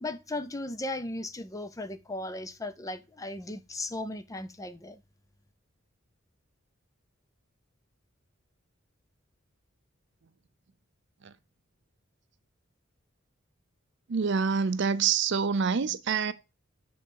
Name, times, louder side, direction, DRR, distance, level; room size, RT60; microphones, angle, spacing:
voice 1, 0.0-5.0, left 2 dB, 15° left, 0.5 m, -36 dB
voice 2, 14.1-16.3, right 6 dB, 60° right, 0.5 m, -26 dB
9.0 x 3.9 x 3.8 m
head